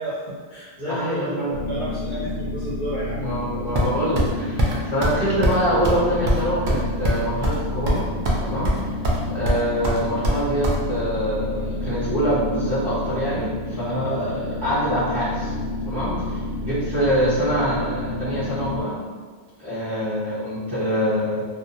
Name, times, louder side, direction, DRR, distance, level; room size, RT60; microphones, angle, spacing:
voice 1, 0.0-3.2, equal, 55° left, -7 dB, 0.6 m, -31 dB
voice 2, 0.9-1.5 3.2-8.1 8.4-9.0 9.3-15.5 15.8-19.0 19.6-21.5, equal, 25° right, -13 dB, 0.7 m, -25 dB
sound 1, 1.5-18.8, left 2 dB, 80° left, 1.0 m, -30 dB
sound 2, 3.8-4.3 4.6-4.7 5.0-5.2 5.4-5.6 5.8-6.0 6.3-7.6 7.9-8.4 8.6-9.2 9.5-10.8, equal, 60° right, 0.6 m, -22 dB
2.5 x 2.1 x 2.7 m, 1.5 s
omnidirectional pair, 1.1 m